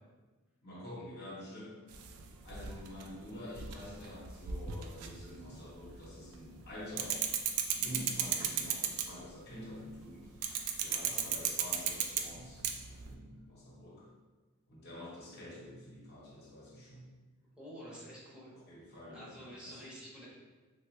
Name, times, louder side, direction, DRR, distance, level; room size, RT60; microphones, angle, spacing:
voice 1, 0.6-1.8 2.4-7.3 7.7-10.5 10.8-14.1 14.7-17.1 18.7-19.8, left 1 dB, 50° left, -4 dB, 0.8 m, -47 dB
sound 1, 1.9-6.1 6.3-9.3 10.4-13.1, right 8 dB, 80° right, 0.3 m, -35 dB
voice 2, 17.6-18.5 19.1-20.3, equal, 5° right, -7 dB, 0.6 m, -49 dB
3.3 x 2.2 x 2.9 m, 1.3 s
head